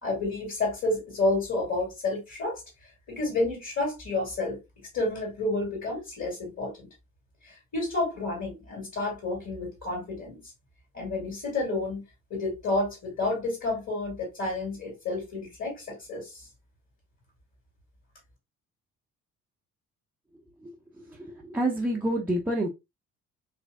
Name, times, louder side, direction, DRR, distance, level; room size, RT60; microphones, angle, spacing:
voice 1, 0.0-2.6 3.1-4.6 4.9-6.9 7.4-10.4 10.9-12.0 12.3-16.5, left 2 dB, 40° left, 2.1 m, -30 dB
voice 2, 21.2-22.7, right 1 dB, 5° right, 0.7 m, -27 dB
3.2 x 3.2 x 2.3 m
figure-of-eight pair, 50°, 42 cm